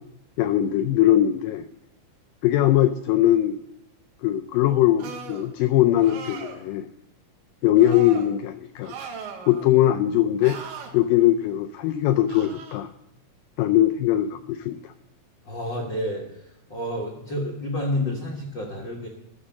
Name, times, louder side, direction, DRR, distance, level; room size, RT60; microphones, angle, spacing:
voice 1, 0.4-1.6 2.4-3.6 4.2-6.9 7.6-8.9 9.5-10.6 10.9-12.9 13.6-14.9, left 13 dB, 85° left, 9 dB, 2.0 m, -21 dB
sound 1, 5.0-5.5 6.0-6.6 7.8-8.3 8.8-9.7 10.4-10.9 12.3-12.8, right 5 dB, 80° right, 3.3 m, -38 dB
voice 2, 15.5-16.2 16.7-19.1, left 1 dB, 55° left, -2 dB, 1.3 m, -29 dB
13.0 x 6.2 x 7.4 m, 0.84 s
omnidirectional pair, 4.4 m